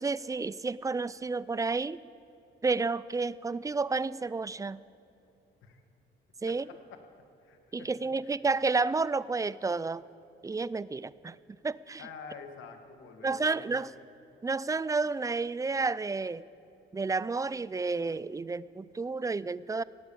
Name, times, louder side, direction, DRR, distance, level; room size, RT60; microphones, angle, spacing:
voice 1, 0.0-2.0 2.6-4.8 6.4-6.6 7.7-10.0 10.4-11.4 11.6-12.0 13.2-13.9 14.4-16.4 16.9-19.8, right 4 dB, 15° right, 19 dB, 0.4 m, -31 dB
voice 2, 6.5-7.0 7.4-8.4 12.0-13.9, left 5 dB, 80° left, 5 dB, 1.8 m, -48 dB
17.5 x 8.9 x 8.7 m, 2.7 s
cardioid pair, 90°, 20 cm